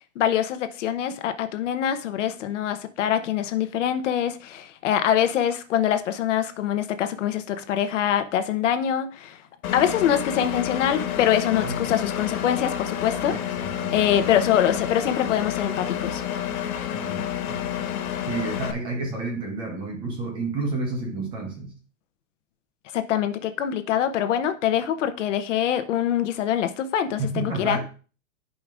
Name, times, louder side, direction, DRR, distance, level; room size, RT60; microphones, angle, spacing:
voice 1, 0.2-9.4 9.7-13.6 13.9-16.2 22.9-27.8, left 10 dB, 60° left, 0.9 m, -24 dB
Engine, 9.6-18.7, left 10 dB, 90° left, 1.6 m, -29 dB
voice 2, 13.3-14.0 16.9-17.8 18.2-21.7 27.2-27.8, right 3 dB, 10° right, 0.8 m, -30 dB
14.0 x 5.2 x 2.5 m
supercardioid pair, 175°, 41 cm